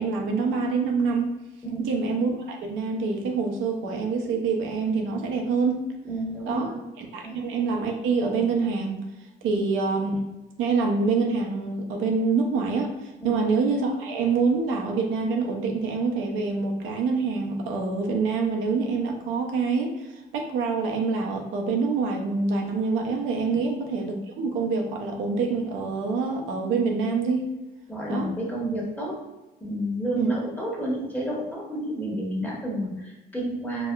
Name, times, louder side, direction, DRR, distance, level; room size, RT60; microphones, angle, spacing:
voice 1, 0.0-1.3 1.8-5.9 6.5-6.7 7.0-9.0 9.4-10.2 10.6-20.1 20.3-27.5 28.1-28.3 30.1-30.3, right 4 dB, 90° right, 1 dB, 0.5 m, -26 dB
voice 2, 6.0-6.8 7.2-7.4 9.5-9.6 13.2-13.4 23.5-23.6 27.9-29.1 29.6-33.9, right 1 dB, 10° left, -5 dB, 1.0 m, -30 dB
4.0 x 2.0 x 2.2 m, 1.1 s
cardioid pair, 90°, 20 cm